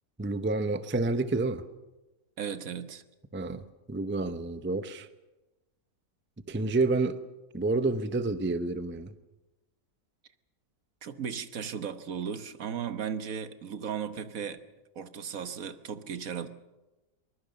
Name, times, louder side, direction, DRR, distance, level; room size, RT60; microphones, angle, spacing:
voice 1, 0.2-1.6 3.3-3.6 3.9-5.1 6.5-7.2 7.5-9.1, right 3 dB, 10° right, 0.5 m, -29 dB
voice 2, 2.4-3.0 11.0-14.6 14.9-16.5, right 7 dB, 65° right, 1.5 m, -36 dB
23.5 x 21.0 x 6.6 m
omnidirectional pair, 1.6 m